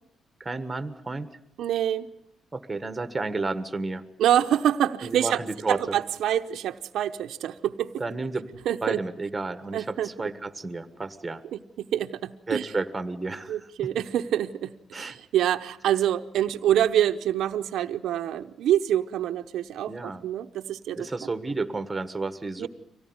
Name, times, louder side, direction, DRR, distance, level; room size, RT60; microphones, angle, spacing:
voice 1, 0.4-1.3 2.5-4.0 5.0-5.8 8.0-11.4 12.5-13.7 14.9-15.2 19.9-20.2 20.9-22.7, right 3 dB, 15° right, 9 dB, 1.5 m, -32 dB
voice 2, 1.6-2.1 4.2-5.4 5.7-7.9 8.7-9.0 9.7-10.1 11.5-12.7 13.5-21.1 22.6-22.7, right 11 dB, 75° right, 7 dB, 0.9 m, -26 dB
25.0 x 17.5 x 9.6 m, 0.78 s
cardioid pair, 150°, 0 cm